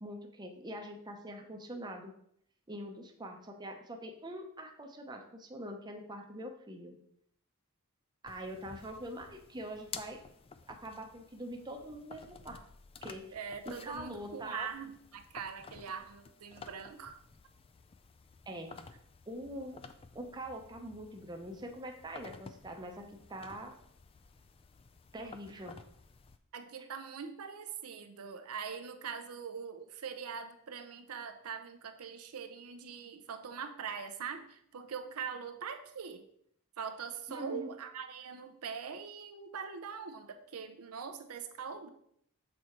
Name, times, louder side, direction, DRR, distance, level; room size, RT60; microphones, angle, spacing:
voice 1, 0.0-2.1 2.7-6.9 8.2-10.2 10.7-12.6 13.0-13.4 13.6-14.7 18.5-18.7 19.3-19.8 20.1-23.8 25.1-25.8 37.3-37.7, right 1 dB, 20° right, 3 dB, 0.7 m, -44 dB
sound 1, 8.3-26.4, left 5 dB, 25° left, 0.3 m, -53 dB
voice 2, 13.3-17.2 26.5-36.2 36.8-41.9, right 6 dB, 80° right, 7 dB, 0.6 m, -42 dB
6.5 x 4.1 x 4.4 m, 0.69 s
head